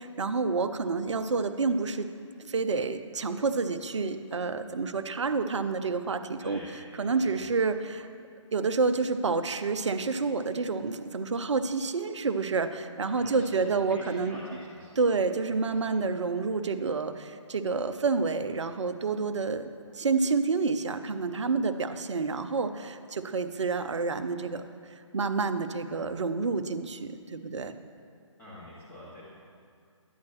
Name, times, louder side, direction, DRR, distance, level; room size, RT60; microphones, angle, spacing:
voice 1, 0.0-2.1 2.4-6.6 7.0-8.1 8.5-14.4 15.0-19.7 19.9-24.6 25.1-27.7, right 4 dB, 65° right, 10 dB, 0.6 m, -29 dB
voice 2, 6.4-7.7 13.0-15.2 15.6-16.0 28.4-29.2, left 1 dB, 10° left, -10 dB, 1.9 m, -46 dB
11.0 x 8.4 x 3.0 m, 2.2 s
figure-of-eight pair, 145°, 16 cm